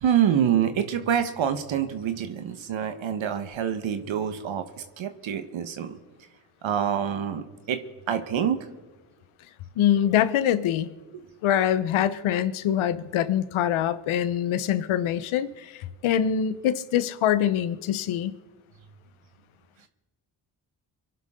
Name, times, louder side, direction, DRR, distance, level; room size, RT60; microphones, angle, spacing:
voice 1, 0.0-4.6 5.0-5.9 6.6-7.8 8.1-8.6 11.1-11.2, right 9 dB, 65° right, 8 dB, 1.4 m, -26 dB
voice 2, 9.8-10.9 11.4-18.3, left 10 dB, 75° left, 14 dB, 1.0 m, -24 dB
23.5 x 11.5 x 3.8 m, 1.2 s
supercardioid pair, 50°, 49 cm